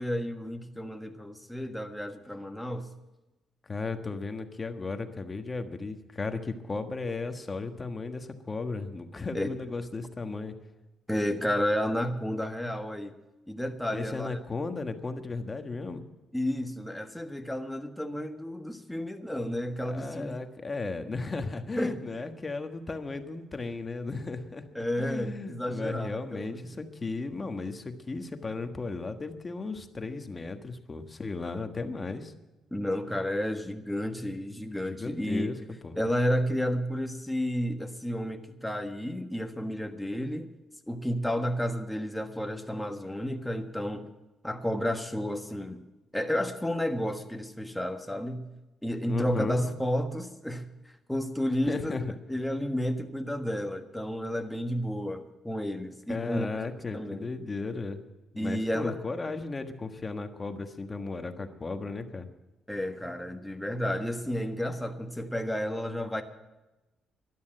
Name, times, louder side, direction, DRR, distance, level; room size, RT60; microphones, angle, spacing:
voice 1, 0.0-2.9 9.3-9.5 11.1-13.1 13.5-14.4 16.3-20.4 21.8-22.0 24.7-26.6 32.7-35.5 36.0-40.5 40.9-44.1 44.4-45.8 46.1-48.4 48.8-50.6 51.1-51.9 52.3-56.5 56.9-57.3 58.4-59.0 62.7-66.2, equal, 5° left, 5 dB, 1.5 m, -31 dB
voice 2, 3.7-10.5 13.9-16.0 19.8-32.3 34.9-35.6 35.8-36.0 49.1-49.7 51.7-52.1 56.1-58.0 58.3-62.3, left 3 dB, 30° left, 7 dB, 1.4 m, -35 dB
12.5 x 11.5 x 7.8 m, 1.0 s
cardioid pair, 90°, 0 cm